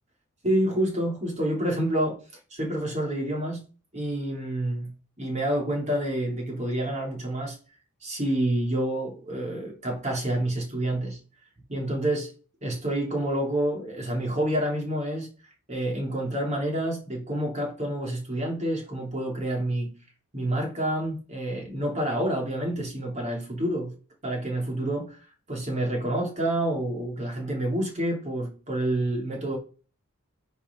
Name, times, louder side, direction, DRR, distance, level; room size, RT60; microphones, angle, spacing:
voice 1, 0.4-2.2 2.5-3.6 3.9-4.9 5.2-7.6 8.0-11.2 11.7-12.3 12.6-15.3 15.7-20.0 20.3-23.9 24.2-25.2 25.5-29.6, right 1 dB, 35° right, 3.6 m, -28 dB
10.0 x 5.1 x 4.7 m
head